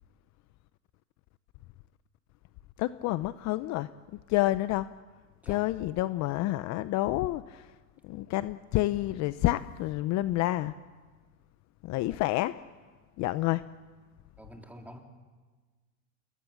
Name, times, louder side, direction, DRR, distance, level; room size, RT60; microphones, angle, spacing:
voice 1, 2.8-3.9 4.3-4.9 5.5-7.7 8.0-10.7 11.8-12.6 13.2-13.6, left 16 dB, 45° left, 14 dB, 0.8 m, -29 dB
voice 2, 14.4-15.0, equal, 5° right, 2 dB, 3.7 m, -47 dB
28.5 x 21.5 x 7.4 m, 1.4 s
supercardioid pair, 115°, 39 cm